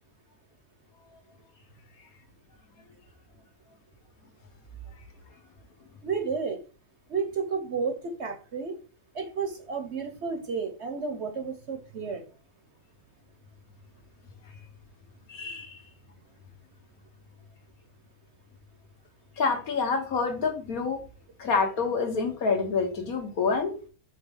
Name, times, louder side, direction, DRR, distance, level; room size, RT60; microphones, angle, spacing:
voice 1, 6.0-6.6 7.1-8.7 9.1-12.3, right 5 dB, 50° right, 6 dB, 1.0 m, -32 dB
voice 2, 15.3-15.8 19.4-21.0 21.4-23.7, left 4 dB, 65° left, 4 dB, 1.7 m, -27 dB
5.4 x 3.6 x 5.4 m, 0.39 s
omnidirectional pair, 1.6 m